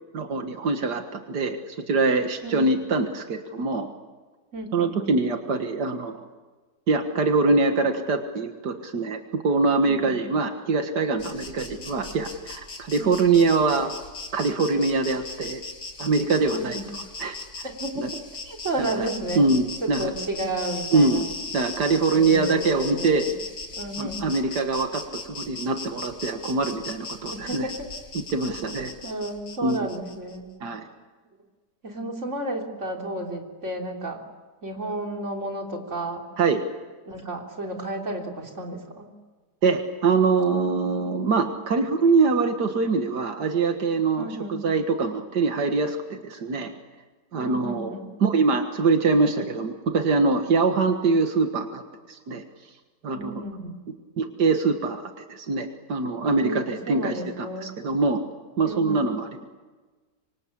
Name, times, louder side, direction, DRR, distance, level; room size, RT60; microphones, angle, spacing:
voice 1, 0.1-3.9 4.7-6.3 6.9-9.2 9.4-13.9 14.3-15.6 16.0-16.8 17.2-17.4 18.0-18.1 18.8-19.1 19.4-20.1 20.9-21.3 21.5-23.3 24.0-27.7 28.1-28.9 29.6-29.9 30.6-30.8 36.4-36.6 39.6-46.7 47.3-51.8 52.1-52.4 53.0-53.4 54.2-58.2 58.6-59.5, right 4 dB, 90° right, 6 dB, 2.2 m, -24 dB
voice 2, 2.4-2.8 4.5-5.1 9.9-10.2 13.0-13.3 16.5-16.9 17.6-18.0 18.5-19.5 19.8-21.2 22.1-23.3 23.8-24.3 27.3-27.9 29.0-30.5 31.8-34.2 34.6-36.3 37.1-39.1 44.2-44.6 47.4-48.1 53.1-53.8 56.2-57.7 58.6-59.1, right 1 dB, 45° right, 2 dB, 3.7 m, -32 dB
Insect, 11.2-30.4, left 4 dB, 90° left, 3.1 m, -38 dB
26.5 x 25.0 x 8.6 m, 1.3 s
omnidirectional pair, 1.7 m